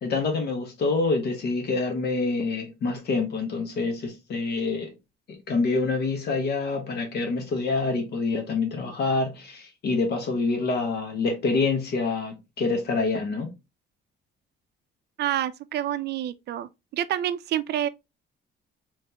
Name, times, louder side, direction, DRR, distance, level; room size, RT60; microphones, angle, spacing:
voice 1, 0.0-4.9 5.5-13.5, left 3 dB, 55° left, 1.1 m, -26 dB
voice 2, 15.2-17.9, right 11 dB, 60° right, 0.4 m, -28 dB
3.4 x 3.2 x 2.8 m
cardioid pair, 120°, 20 cm